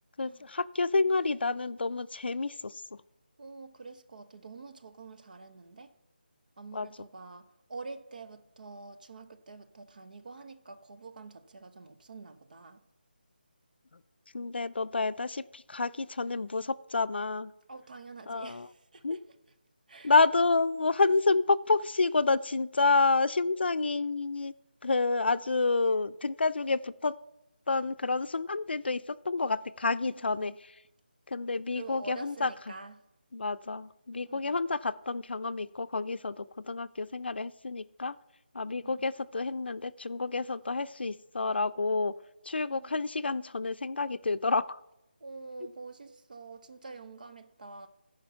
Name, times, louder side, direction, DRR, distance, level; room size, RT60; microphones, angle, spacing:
voice 1, 0.2-3.0 6.7-6.9 14.3-17.5 18.3-18.7 19.0-19.2 20.0-24.5 24.8-27.1 27.7-30.8 31.3-32.7 33.3-38.2 38.5-42.1 42.4-44.8, left 3 dB, 85° left, 0.5 m, -29 dB
voice 2, 3.4-5.9 6.6-12.8 17.7-19.2 19.9-20.1 30.1-30.6 31.7-33.0 34.3-34.6 38.8-39.0 42.7-43.0 45.2-47.9, right 3 dB, 50° right, 0.8 m, -47 dB
15.0 x 5.1 x 5.7 m
figure-of-eight pair, 170°, 6 cm